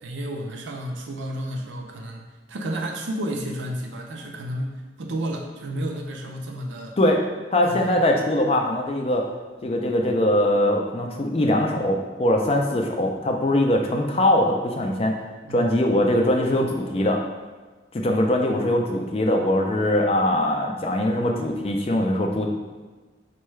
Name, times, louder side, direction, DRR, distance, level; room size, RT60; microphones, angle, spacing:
voice 1, 0.0-7.0 7.6-7.9 15.4-15.7, right 1 dB, 80° right, 1 dB, 0.5 m, -32 dB
voice 2, 7.5-9.3 9.6-15.1 15.5-17.2 17.9-22.5, left 1 dB, 30° left, 2 dB, 0.4 m, -22 dB
4.5 x 2.3 x 3.1 m, 1.3 s
head